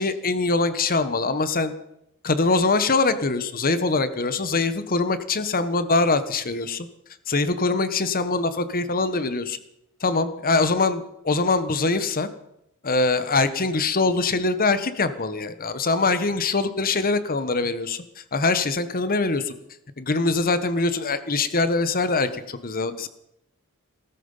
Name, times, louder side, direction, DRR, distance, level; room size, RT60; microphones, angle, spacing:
voice 1, 0.0-1.7 2.2-6.9 7.3-9.6 10.0-12.3 12.8-19.5 20.0-23.1, left 3 dB, 45° left, 12 dB, 1.2 m, -23 dB
17.5 x 14.5 x 5.6 m, 0.80 s
head